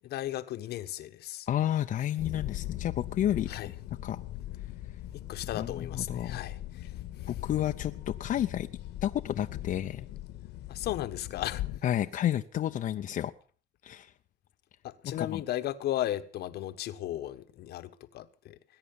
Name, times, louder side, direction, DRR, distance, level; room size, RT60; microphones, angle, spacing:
voice 1, 0.0-1.5 3.5-3.7 5.1-6.9 7.2-7.3 10.7-11.6 14.8-18.6, left 13 dB, 70° left, 1.3 m, -35 dB
voice 2, 1.5-3.7 4.0-4.2 5.5-6.4 7.3-8.7 9.0-10.1 11.8-13.3 13.8-14.1 15.0-15.4, left 11 dB, 50° left, 0.7 m, -31 dB
sound 1, 2.2-11.8, left 14 dB, 90° left, 1.7 m, -40 dB
20.5 x 10.0 x 7.0 m
cardioid pair, 110°, 17 cm